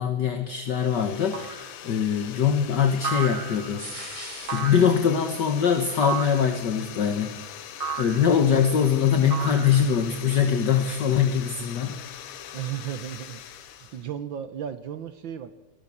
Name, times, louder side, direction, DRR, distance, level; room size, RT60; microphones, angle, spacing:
voice 1, 0.0-3.9 4.5-7.4 8.0-12.0, left 7 dB, 55° left, 7 dB, 1.9 m, -23 dB
sound 1, 0.6-14.1, left 10 dB, 85° left, 2.0 m, -42 dB
sound 2, 1.3-1.7 3.0-3.8 4.5-5.1 6.0-6.5 7.8-8.3 9.3-10.1, right 5 dB, 35° right, 0.9 m, -33 dB
sound 3, 3.8-4.7 5.2-7.2 9.8-13.9, right 1 dB, 15° right, 3.0 m, -46 dB
voice 2, 12.5-13.4 13.9-15.5, right 10 dB, 65° right, 12 dB, 1.6 m, -34 dB
28.0 x 20.0 x 7.2 m, 1.1 s
omnidirectional pair, 2.4 m